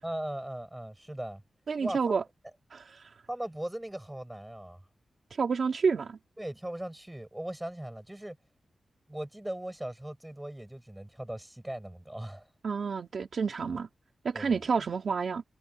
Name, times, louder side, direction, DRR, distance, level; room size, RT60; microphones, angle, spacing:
voice 1, 0.0-1.4 1.8-2.2 3.3-4.8 6.4-8.4 9.1-12.5 14.3-14.6, right 1 dB, 10° right, 6.9 m, -39 dB
voice 2, 1.7-2.2 2.7-3.1 5.3-6.2 12.6-13.9 14.2-15.4, right 5 dB, 55° right, 3.1 m, -29 dB
wide cardioid pair, 170°, 0 cm